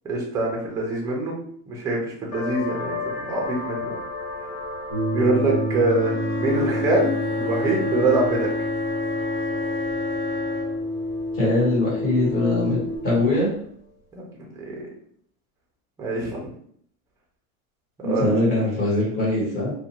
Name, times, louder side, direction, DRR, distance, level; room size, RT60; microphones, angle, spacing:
voice 1, 0.0-1.3 1.7-4.0 5.1-8.5 14.1-14.7 16.0-16.4 18.0-18.4, right 2 dB, 10° right, -2 dB, 0.3 m, -24 dB
sound 1, 2.3-13.6, left 3 dB, 85° left, 1.1 m, -36 dB
sound 2, 4.9-13.0, equal, 15° left, 1.0 m, -28 dB
Wind instrument woodwind instrument, 5.9-10.8, left 3 dB, 50° left, 1.2 m, -31 dB
voice 2, 11.4-12.8 13.0-13.5 18.0-19.7, left 2 dB, 30° left, -6 dB, 1.3 m, -22 dB
2.4 x 2.1 x 2.8 m, 0.62 s
supercardioid pair, 145°, 41 cm